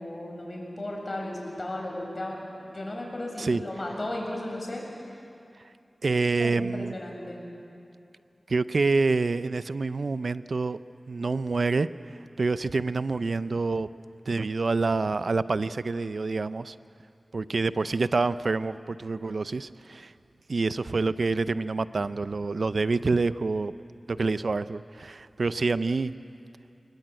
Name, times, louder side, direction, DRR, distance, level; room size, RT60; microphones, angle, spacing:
voice 1, 0.0-2.4 2.6-4.8 6.4-7.4, left 1 dB, 45° left, 0 dB, 7.5 m, -35 dB
voice 2, 6.0-7.0 8.5-10.8 11.1-11.9 12.4-13.9 14.3-16.7 17.3-20.1 20.5-23.7 24.1-26.1, right 3 dB, 75° right, 14 dB, 0.6 m, -27 dB
28.5 x 20.0 x 9.1 m, 2.6 s
cardioid pair, 45°, 0 cm